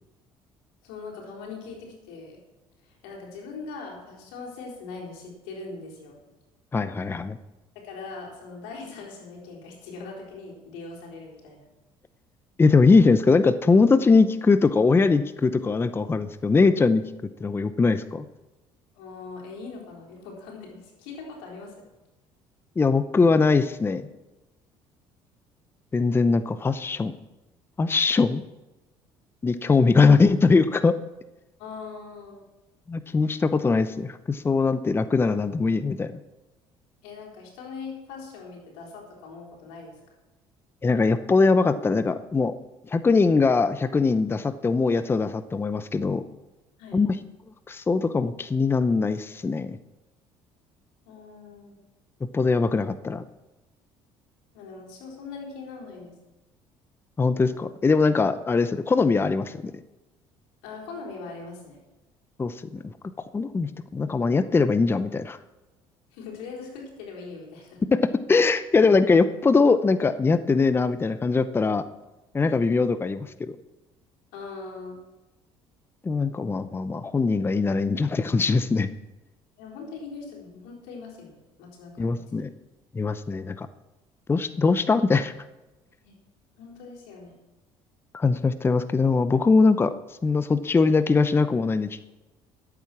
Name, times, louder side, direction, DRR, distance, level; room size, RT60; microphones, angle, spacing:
voice 1, 0.8-2.4 2.8-6.2 7.7-11.6 19.0-21.7 29.8-29.9 31.6-32.4 37.0-40.0 46.8-47.0 51.1-51.7 54.5-56.2 60.6-61.8 66.1-67.8 72.4-72.6 74.3-75.0 79.6-82.2 86.0-86.2 86.6-87.3, left 4 dB, 90° left, -2 dB, 4.1 m, -41 dB
voice 2, 6.7-7.4 12.6-17.0 17.4-18.2 22.8-24.1 25.9-27.1 27.8-28.4 29.4-30.9 32.9-36.2 40.8-42.5 42.9-46.2 46.9-47.1 47.7-49.8 52.3-53.2 57.2-59.7 62.4-62.9 63.3-65.4 67.9-68.0 68.3-71.8 72.3-73.6 76.0-78.9 82.0-82.5 82.9-83.7 84.3-85.3 88.1-89.9 90.2-92.0, left 4 dB, 20° left, 12 dB, 0.6 m, -21 dB
11.5 x 8.7 x 6.0 m, 1.0 s
supercardioid pair, 90°, 11 cm